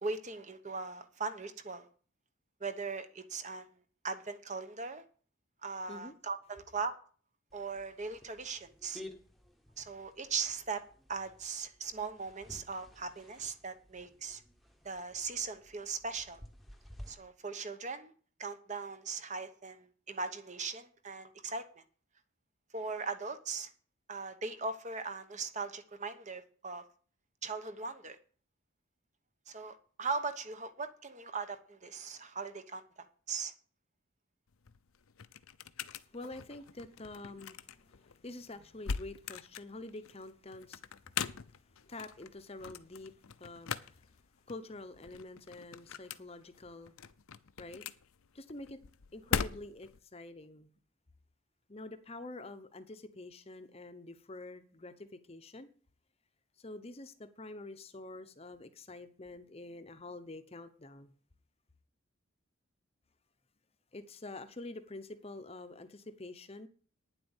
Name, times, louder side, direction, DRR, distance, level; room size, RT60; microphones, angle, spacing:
voice 1, 0.0-1.9 2.6-3.8 4.0-5.0 5.6-7.0 7.5-9.0 9.8-10.8 11.1-14.4 14.8-16.4 17.1-18.1 18.4-21.8 22.7-23.7 24.1-26.8 27.4-28.2 29.5-33.5, right 4 dB, 35° right, 1.0 m, -39 dB
sound 1, 7.5-17.1, left 1 dB, ahead, 1.1 m, -54 dB
sound 2, 34.5-50.0, left 6 dB, 80° left, 0.7 m, -42 dB
voice 2, 36.0-40.8 41.9-43.1 43.4-44.1 44.5-46.9 47.6-47.8 48.3-48.8 49.1-50.7 51.7-55.7 56.6-61.1 63.9-66.7, left 2 dB, 30° left, 0.8 m, -47 dB
9.8 x 7.7 x 7.2 m
head